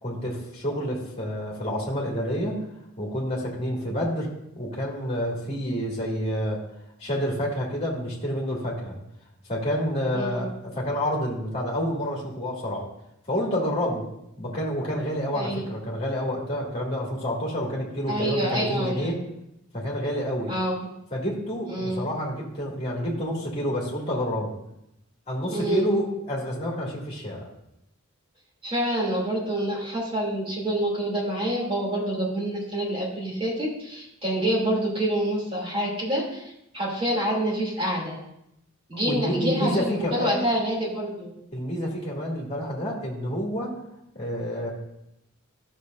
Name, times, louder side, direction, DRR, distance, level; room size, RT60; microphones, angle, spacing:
voice 1, 0.0-2.6 3.0-4.3 4.5-6.6 7.0-9.0 9.5-12.8 13.3-14.0 14.4-19.1 19.7-20.5 21.1-24.5 25.3-27.5 39.0-40.4 41.5-43.7 44.2-44.7, equal, 30° left, -3 dB, 2.2 m, -28 dB
voice 2, 18.1-19.1 20.5-20.9 21.7-22.1 25.5-25.8 28.6-38.2 38.9-41.3, right 1 dB, 25° right, -5 dB, 2.8 m, -27 dB
13.0 x 6.5 x 2.6 m, 0.82 s
head